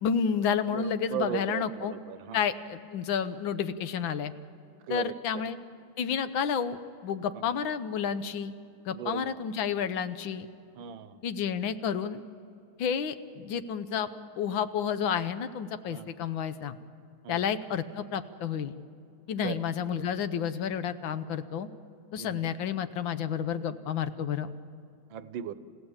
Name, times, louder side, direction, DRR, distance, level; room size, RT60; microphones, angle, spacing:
voice 1, 0.0-1.9 2.3-4.3 4.9-5.6 6.0-8.5 8.8-10.5 11.2-12.2 12.8-14.1 14.4-16.8 17.3-18.7 19.3-21.7 22.1-24.5, left 7 dB, 80° left, 11 dB, 1.6 m, -30 dB
voice 2, 0.7-2.5 4.9-5.4 7.3-7.5 8.9-9.3 10.8-11.2 15.9-16.1 17.2-17.4 19.4-19.6 19.9-20.0 22.2-22.5 25.1-25.5, right 11 dB, 80° right, 14 dB, 1.6 m, -37 dB
29.5 x 16.0 x 7.2 m, 2.6 s
omnidirectional pair, 2.1 m